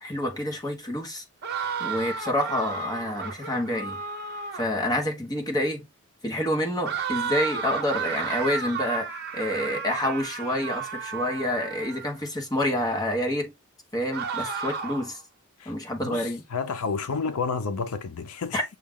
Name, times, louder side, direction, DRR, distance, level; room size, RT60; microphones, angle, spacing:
voice 1, 0.0-1.2 1.8-4.0 4.5-5.8 6.2-13.5 13.9-15.2 15.6-16.4 18.5-18.6, left 1 dB, 15° left, 1.0 m, -28 dB
sound 1, 1.4-4.8 6.8-12.1 14.1-15.2, right 6 dB, 50° right, 1.0 m, -33 dB
voice 2, 16.0-18.6, left 5 dB, 75° left, 0.6 m, -30 dB
6.3 x 2.4 x 3.5 m
head